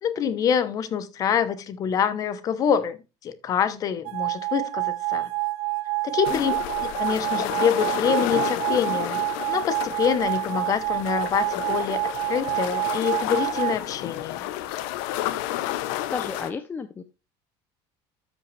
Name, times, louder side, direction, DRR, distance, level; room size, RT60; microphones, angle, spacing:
voice 1, 0.0-3.0 3.2-5.3 6.0-6.5 6.8-9.2 9.5-12.0 12.3-14.5, left 8 dB, 30° left, 0.9 m, -26 dB
sound 1, 4.1-13.8, right 23 dB, 65° right, 0.4 m, -28 dB
sound 2, 6.2-16.5, left 14 dB, 85° left, 0.9 m, -31 dB
voice 2, 16.1-17.0, left 5 dB, 15° left, 0.5 m, -33 dB
13.0 x 5.4 x 3.3 m
cardioid pair, 170°, 11 cm